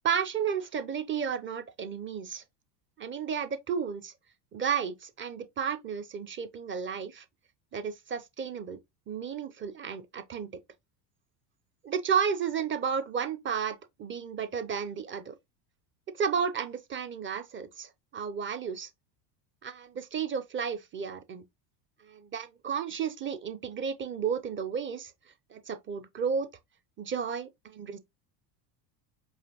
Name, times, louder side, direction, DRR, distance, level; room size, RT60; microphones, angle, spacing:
voice 1, 0.0-2.4 3.0-4.1 4.5-7.2 7.7-8.8 9.1-10.5 11.8-15.4 16.2-18.9 19.6-21.4 22.0-25.1 25.5-26.5 27.0-28.0, right 7 dB, 25° right, 0.6 m, -32 dB
4.8 x 2.7 x 2.9 m
supercardioid pair, 95°, 50 cm